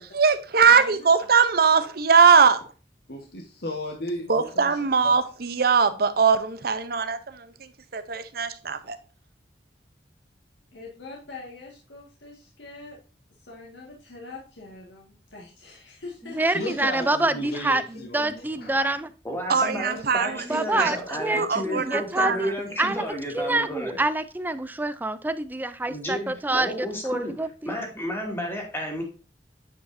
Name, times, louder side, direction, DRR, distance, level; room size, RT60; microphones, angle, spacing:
voice 1, 0.0-2.6 4.3-9.0 19.5-20.9 21.3-22.5, right 5 dB, 60° right, 0.7 m, -21 dB
voice 2, 0.7-1.3 10.7-13.0 13.4-17.1, left 3 dB, 85° left, 1.8 m, -43 dB
voice 3, 3.1-4.8 5.0-5.1 16.5-18.7, left 1 dB, 60° left, 1.4 m, -35 dB
voice 4, 16.3-19.1 20.5-22.5 22.8-23.1 23.3-27.7, right 2 dB, 10° right, 0.4 m, -26 dB
voice 5, 19.2-24.0 25.9-27.3 27.6-29.0, equal, 15° left, 2.2 m, -32 dB
9.1 x 4.9 x 2.7 m
head